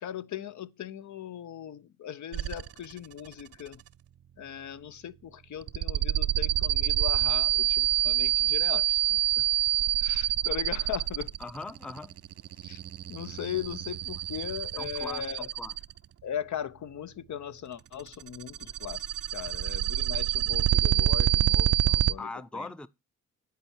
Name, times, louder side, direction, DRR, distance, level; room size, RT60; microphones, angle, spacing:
voice 1, 0.0-3.8 4.4-9.2 10.0-11.3 12.6-12.8 13.1-15.5 16.2-19.1 19.3-22.7, left 9 dB, 65° left, 0.6 m, -38 dB
sound 1, 2.3-2.9 3.3-3.7 5.6-16.0 18.0-22.1, right 13 dB, 50° right, 0.4 m, -27 dB
voice 2, 11.4-12.2 14.8-15.8 22.2-22.9, left 3 dB, 5° left, 0.5 m, -40 dB
9.4 x 4.6 x 4.3 m
cardioid pair, 60°, 32 cm